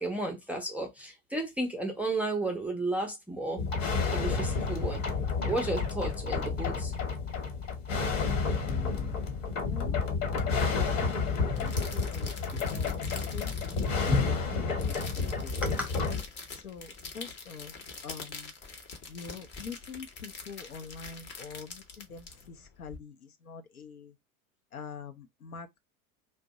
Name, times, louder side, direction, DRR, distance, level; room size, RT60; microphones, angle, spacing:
voice 1, 0.0-3.6 4.1-5.0 5.4-6.9 10.7-10.8 11.5-11.7 12.5-12.6 13.7-14.4 15.6-15.9, right 1 dB, 5° right, 0.4 m, -33 dB
sound 1, 3.6-16.2, left 4 dB, 60° left, 1.3 m, -30 dB
voice 2, 8.6-9.2 9.7-10.0 10.7-12.3 12.7-14.4 15.1-15.7 16.5-17.7 18.0-18.5 19.1-24.1 24.7-25.8, left 5 dB, 80° left, 0.7 m, -45 dB
sound 2, 10.4-23.0, left 4 dB, 25° left, 0.7 m, -44 dB
2.5 x 2.1 x 3.9 m
figure-of-eight pair, 85°, 42 cm